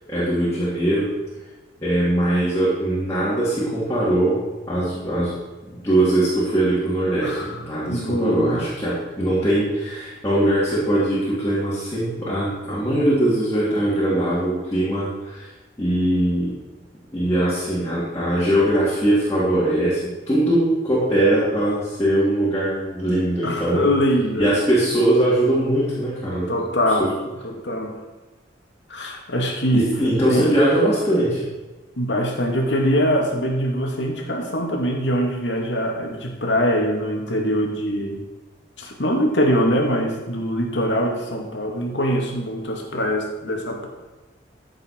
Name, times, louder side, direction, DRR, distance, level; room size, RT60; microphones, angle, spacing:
voice 1, 0.1-1.0 1.8-4.4 4.7-5.3 5.7-15.5 15.8-16.5 17.1-23.9 24.4-26.5 27.0-27.1 29.7-31.5, right 1 dB, 15° left, -10 dB, 3.4 m, -21 dB
voice 2, 7.2-7.6 7.8-8.6 23.4-24.5 26.5-27.1 27.4-28.0 28.9-29.9 30.3-30.5 32.0-38.2 38.8-43.9, equal, 85° left, 1 dB, 2.2 m, -23 dB
14.5 x 7.8 x 4.6 m, 1.1 s
head